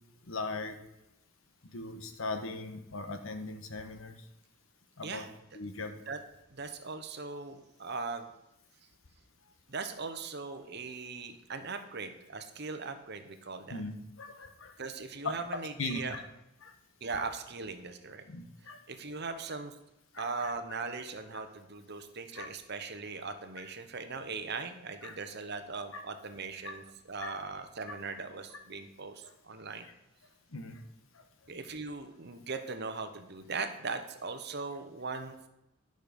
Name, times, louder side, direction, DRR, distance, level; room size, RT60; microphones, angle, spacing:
voice 1, 0.3-0.8 1.7-4.2 5.0-5.2 5.5-6.0 13.7-14.7 15.2-16.2 16.6-16.7 17.1-17.3 18.3-18.8 20.1-20.5 21.3-21.4 22.3-22.5 25.0-25.2 25.9-26.0 26.6-26.9 27.2-27.4 27.9-28.0 29.2-29.3 29.8-29.9 30.5-30.8 31.1-31.2, left 3 dB, 70° left, 7 dB, 1.2 m, -39 dB
voice 2, 6.5-8.3 9.7-13.8 14.8-16.2 17.0-18.2 18.9-19.8 20.2-26.8 27.1-29.9 31.5-35.5, right 4 dB, 55° right, 8 dB, 1.0 m, -39 dB
11.5 x 6.5 x 5.2 m, 0.89 s
head